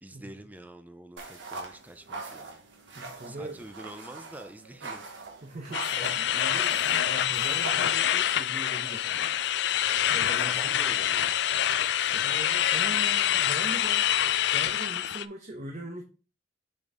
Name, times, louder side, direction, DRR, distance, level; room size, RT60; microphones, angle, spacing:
voice 1, 0.0-2.6 3.3-5.0 10.1-11.3 12.1-12.4, right 1 dB, 10° right, 0.5 m, -46 dB
sound 1, 1.2-8.3, right 3 dB, 85° right, 1.3 m, -42 dB
voice 2, 2.9-3.6 5.4-9.1 10.1-10.9 12.0-14.1 14.5-16.0, right 1 dB, 40° right, 0.9 m, -41 dB
sound 2, 5.7-15.3, left 11 dB, 65° left, 0.3 m, -26 dB
6.3 x 4.2 x 3.7 m
head